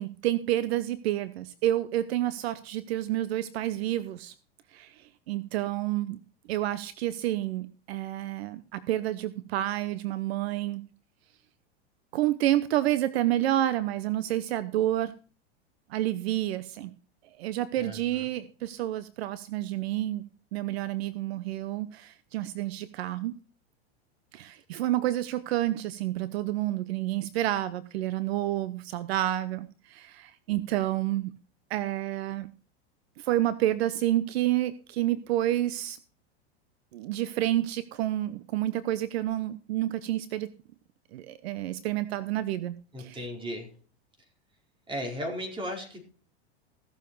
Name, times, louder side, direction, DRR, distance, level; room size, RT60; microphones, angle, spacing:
voice 1, 0.0-4.3 4.7-6.2 6.5-10.9 12.1-15.1 15.9-17.0 17.4-23.4 24.3-31.4 31.7-32.5 33.2-36.0 36.9-40.5 41.1-43.3, right 14 dB, 70° right, 15 dB, 0.9 m, -29 dB
voice 2, 17.8-18.2 42.9-43.7 44.9-46.0, equal, 15° right, 2 dB, 4.7 m, -36 dB
16.5 x 7.2 x 4.6 m, 0.37 s
hypercardioid pair, 120°, 33 cm